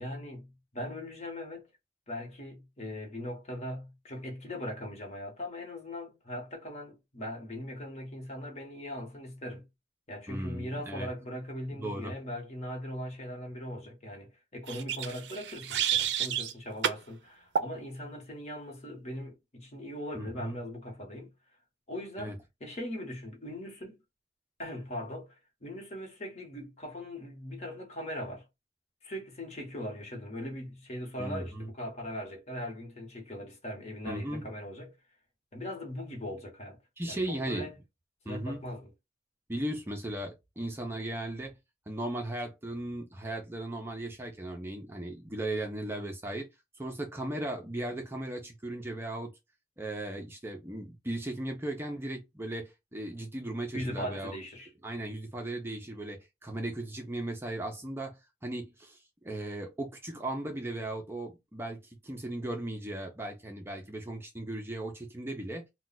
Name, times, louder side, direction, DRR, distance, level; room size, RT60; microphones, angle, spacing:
voice 1, 0.0-1.6 2.1-9.6 10.1-21.3 21.9-24.0 24.6-25.3 25.6-28.4 29.0-34.9 35.5-36.8 37.0-37.7 38.2-38.9 53.7-54.7, left 1 dB, 40° left, 1.1 m, -40 dB
voice 2, 10.3-11.1 11.7-12.1 20.1-20.6 22.2-22.3 31.2-31.7 34.0-34.4 37.0-37.7 38.3-38.6 39.5-41.5 41.9-46.5 46.8-49.3 49.8-65.7, right 1 dB, 15° right, 0.5 m, -37 dB
sound 1, 14.7-16.5 16.8-17.0 17.5-17.7, right 9 dB, 70° right, 0.4 m, -30 dB
2.4 x 2.2 x 3.9 m
head